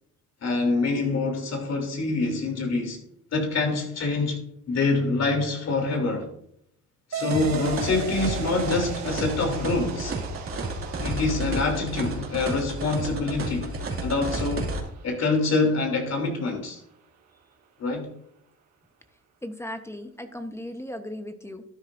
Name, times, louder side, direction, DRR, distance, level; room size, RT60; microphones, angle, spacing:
voice 1, 0.4-3.0 3.3-4.4 4.7-6.3 7.1-10.1 11.0-13.7 14.0-14.7 15.0-16.8 17.8-18.1, left 3 dB, 60° left, 3.2 m, -25 dB
sound 1, 7.1-16.1, right 5 dB, 65° right, 1.3 m, -39 dB
sound 2, 7.3-14.8, right 2 dB, 45° right, 2.5 m, -31 dB
voice 2, 19.4-21.6, left 1 dB, 10° left, 1.0 m, -37 dB
12.5 x 10.0 x 2.6 m
cardioid pair, 90°, 30 cm